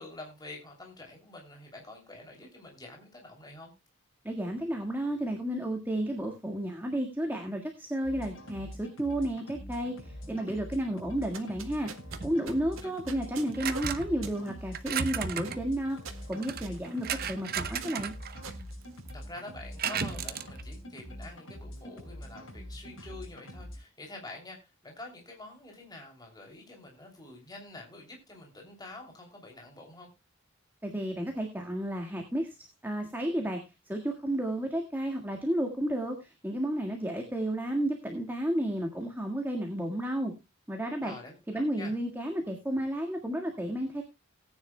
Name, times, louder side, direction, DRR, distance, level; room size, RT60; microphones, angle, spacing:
voice 1, 0.0-3.7 12.8-12.9 19.1-30.1 41.0-41.9, left 2 dB, 20° left, 3.0 m, -47 dB
voice 2, 4.2-11.9 12.2-16.0 16.3-18.1 30.8-32.6 32.8-33.6 33.9-40.3 40.7-41.1 41.5-44.0, right 1 dB, 10° right, 1.7 m, -32 dB
sound 1, 8.0-23.8, equal, 75° left, 6.0 m, -44 dB
sound 2, 11.1-19.5, right 4 dB, 80° right, 1.8 m, -47 dB
sound 3, 12.1-12.3 13.5-14.2 14.7-15.6 16.3-18.7 19.1-19.2 19.8-20.6, right 7 dB, 50° right, 0.9 m, -34 dB
19.0 x 9.6 x 2.2 m
head